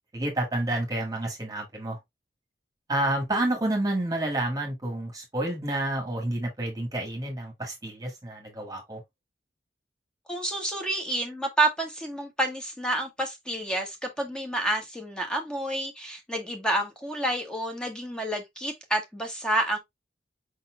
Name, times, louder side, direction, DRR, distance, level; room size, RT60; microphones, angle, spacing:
voice 1, 0.1-2.0 2.9-9.0, right 1 dB, 20° right, 1.5 m, -29 dB
voice 2, 10.3-19.8, right 1 dB, 5° left, 1.4 m, -29 dB
5.2 x 4.2 x 2.3 m
head